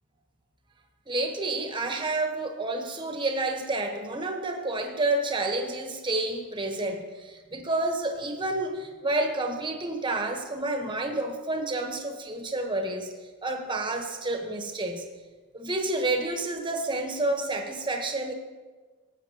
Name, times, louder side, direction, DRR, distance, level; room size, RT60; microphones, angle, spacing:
voice 1, 1.1-13.1 13.4-15.0 15.5-18.3, right 2 dB, 20° right, 3 dB, 1.1 m, -29 dB
17.5 x 8.2 x 2.9 m, 1.3 s
head